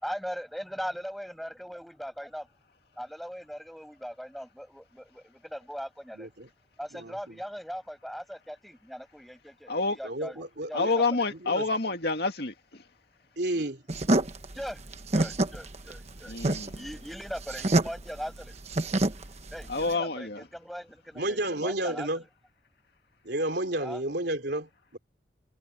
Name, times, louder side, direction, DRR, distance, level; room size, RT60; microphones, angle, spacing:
voice 1, 0.0-2.5 3.0-6.3 6.8-11.2 13.5-13.7 14.5-14.8 15.1-18.6 19.5-22.3 23.8-24.0, equal, ahead, 6.2 m, -40 dB
voice 2, 6.1-6.5 6.9-7.4 10.0-10.9 11.3-11.6 13.4-13.8 21.2-22.2 23.2-25.0, right 1 dB, 60° right, 3.8 m, -31 dB
voice 3, 10.7-12.8 16.3-16.6 19.7-20.4, left 3 dB, 60° left, 2.3 m, -28 dB
sound 1, 13.9-19.9, right 2 dB, 35° right, 1.2 m, -27 dB
head